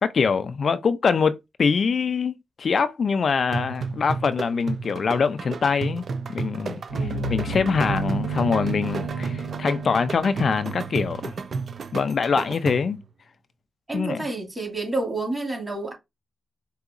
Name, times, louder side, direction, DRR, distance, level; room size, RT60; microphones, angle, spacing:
voice 1, 0.0-6.0 6.3-6.8 7.3-11.3 11.9-13.0 13.9-14.2, left 5 dB, 60° left, 0.4 m, -24 dB
sound 1, 3.5-13.1, right 4 dB, 60° right, 0.4 m, -32 dB
voice 2, 6.9-7.5 13.9-15.9, right 2 dB, 25° right, 2.1 m, -30 dB
sound 2, 6.9-11.7, right 3 dB, 90° right, 1.0 m, -32 dB
4.7 x 2.7 x 2.5 m
cardioid pair, 70°, 0 cm